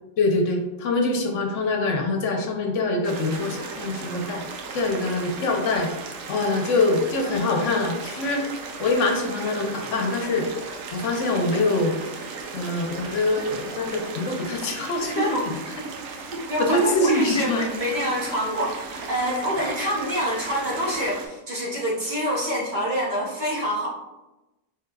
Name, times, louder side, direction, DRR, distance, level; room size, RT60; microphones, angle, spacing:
voice 1, 0.2-4.4 4.7-5.9 6.3-8.5 8.8-10.5 10.9-11.9 12.5-15.4 16.6-17.6, left 2 dB, 65° left, 2 dB, 1.0 m, -24 dB
sound 1, 3.0-21.3, right 4 dB, 70° right, 0.9 m, -36 dB
voice 2, 16.5-23.9, equal, 45° right, -4 dB, 0.7 m, -26 dB
4.7 x 3.4 x 2.3 m, 1.0 s
omnidirectional pair, 1.5 m